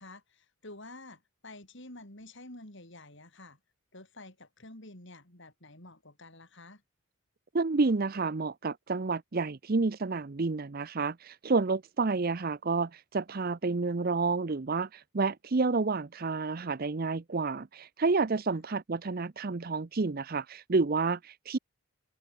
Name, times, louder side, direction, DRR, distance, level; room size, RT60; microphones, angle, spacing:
voice 1, 0.0-3.6 3.9-6.8 18.5-18.6, left 2 dB, 55° left, 5.1 m, -49 dB
voice 2, 7.5-21.6, right 3 dB, 40° right, 0.6 m, -29 dB
head